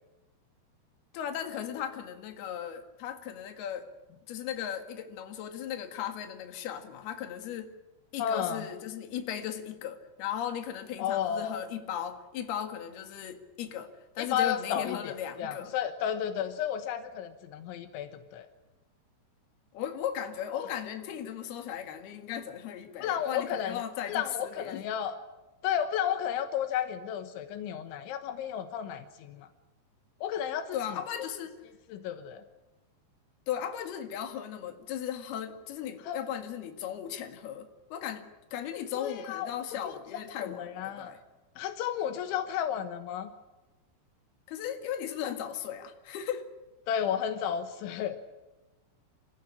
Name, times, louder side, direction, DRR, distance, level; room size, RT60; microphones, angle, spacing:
voice 1, 1.1-3.9 4.3-7.7 8.1-15.7 19.7-24.8 30.7-31.5 33.5-41.2 44.5-46.5, left 9 dB, 65° left, 6 dB, 3.7 m, -37 dB
voice 2, 8.2-8.7 11.0-11.7 14.2-18.5 20.5-20.6 23.0-23.8 24.1-25.2 25.6-29.5 30.2-31.0 31.9-32.4 36.0-36.2 39.0-39.5 40.4-41.1 41.6-43.3 46.9-48.2, left 9 dB, 85° left, 8 dB, 3.6 m, -32 dB
28.0 x 15.0 x 10.0 m, 1.1 s
omnidirectional pair, 5.3 m